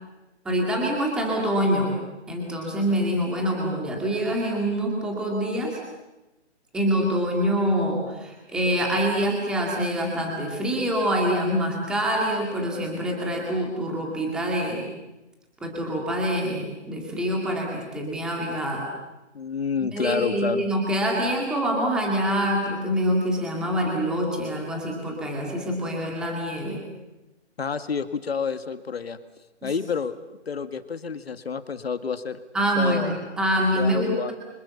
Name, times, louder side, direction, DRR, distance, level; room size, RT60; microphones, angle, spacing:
voice 1, 0.4-1.9 2.3-5.8 6.7-14.9 15.6-18.9 19.8-26.8 29.6-29.7 32.5-34.3, equal, ahead, -1 dB, 2.3 m, -25 dB
voice 2, 19.3-20.6 27.6-29.2 29.6-30.1 30.5-32.4 32.8-33.1 33.8-34.3, left 6 dB, 60° left, 10 dB, 2.0 m, -29 dB
30.0 x 25.5 x 7.1 m, 1.0 s
hypercardioid pair, 175°, 35 cm